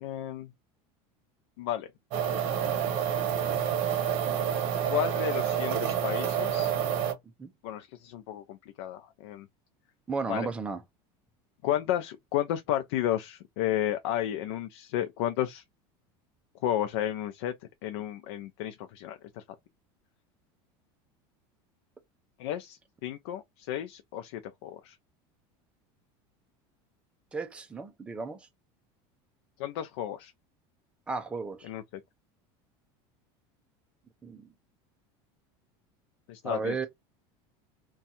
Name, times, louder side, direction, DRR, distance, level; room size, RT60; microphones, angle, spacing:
voice 1, 0.0-0.5 1.6-1.9 4.9-6.7 7.6-9.5 10.3-10.5 11.6-15.6 16.6-17.5 17.8-19.4 22.4-25.0 29.6-30.3 31.6-31.8 36.3-36.9, left 12 dB, 75° left, 0.5 m, -32 dB
sound 1, 2.1-7.1, right 9 dB, 50° right, 0.9 m, -28 dB
voice 2, 10.1-10.8 27.3-28.4 31.1-31.7 34.2-34.5 36.4-36.9, right 4 dB, 10° right, 0.4 m, -34 dB
2.6 x 2.3 x 4.0 m
cardioid pair, 175°, 13 cm